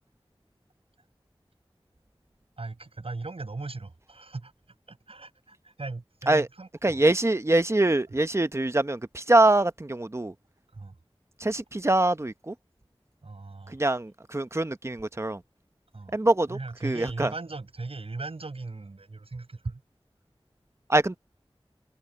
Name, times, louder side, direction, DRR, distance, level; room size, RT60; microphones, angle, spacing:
voice 1, 2.6-4.5 4.9-7.0 10.7-11.0 13.2-13.8 15.9-16.2 16.5-19.8, right 3 dB, 90° right, 7.7 m, -38 dB
voice 2, 6.8-10.3 11.4-12.5 13.7-15.4 16.1-17.3 20.9-21.2, right 2 dB, 30° right, 0.9 m, -24 dB
wide cardioid pair, 50°, 10 cm